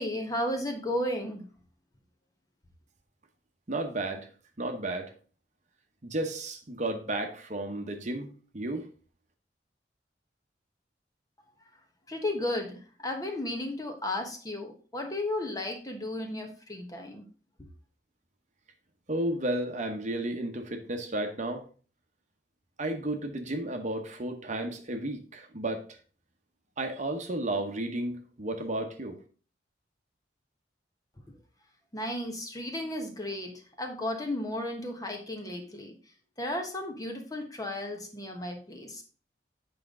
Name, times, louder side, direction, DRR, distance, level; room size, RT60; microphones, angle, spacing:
voice 1, 0.0-1.4 12.1-17.2 31.9-35.9 36.4-39.0, left 1 dB, 20° left, 3 dB, 1.2 m, -34 dB
voice 2, 3.7-4.3 4.6-5.1 6.0-8.9 19.1-21.6 22.8-25.8 26.8-29.2, right 1 dB, 45° right, 5 dB, 1.0 m, -33 dB
8.2 x 5.2 x 3.7 m, 0.39 s
head